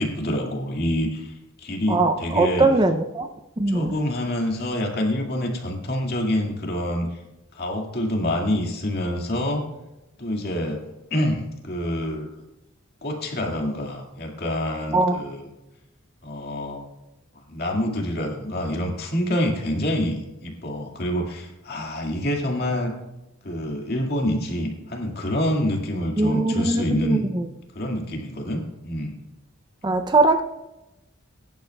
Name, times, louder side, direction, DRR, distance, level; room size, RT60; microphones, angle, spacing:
voice 1, 0.0-2.7 3.7-7.2 7.5-9.6 10.2-10.8 11.1-12.3 13.0-15.5 16.2-16.9 17.5-22.9 23.4-27.3 27.7-29.2, left 1 dB, 50° left, 1 dB, 2.1 m, -26 dB
voice 2, 1.9-3.3 3.6-3.9 14.9-15.2 26.2-27.5 29.8-30.4, right 2 dB, 20° right, 7 dB, 0.5 m, -21 dB
21.0 x 10.5 x 2.3 m, 0.97 s
head